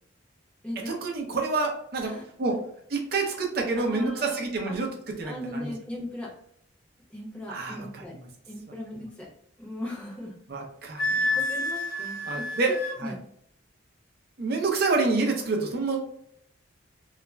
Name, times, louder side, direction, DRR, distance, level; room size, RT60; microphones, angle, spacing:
voice 1, 0.9-2.6 2.9-5.7 7.5-8.3 9.0-9.1 10.5-11.4 12.2-13.1 14.4-16.0, right 3 dB, 50° right, 1 dB, 0.5 m, -28 dB
voice 2, 3.7-4.4 4.7-4.8 5.2-6.3 7.1-8.1 8.5-9.3 9.6-10.3 11.2-12.8 13.0-13.1, left 1 dB, 5° left, -4 dB, 0.7 m, -38 dB
Wind instrument woodwind instrument, 11.0-13.0, left 1 dB, 45° left, 0.7 m, -29 dB
2.4 x 2.1 x 3.1 m, 0.71 s
head